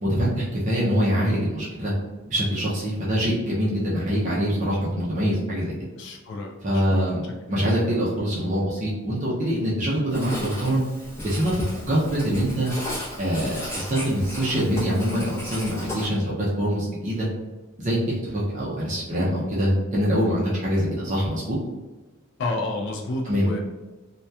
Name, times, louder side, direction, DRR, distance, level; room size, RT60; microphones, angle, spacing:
voice 1, 0.0-1.9 2.2-5.7 6.6-7.2 7.5-10.8 11.2-11.5 11.9-12.7 13.2-17.3 17.8-21.6 23.2-23.5, equal, 35° right, -6 dB, 0.5 m, -24 dB
voice 2, 6.0-7.0 7.5-7.6 22.4-23.6, left 2 dB, 50° left, 0 dB, 0.3 m, -30 dB
Writing, 10.1-16.1, left 1 dB, 10° left, 0.6 m, -35 dB
2.8 x 2.2 x 2.2 m, 1.1 s
head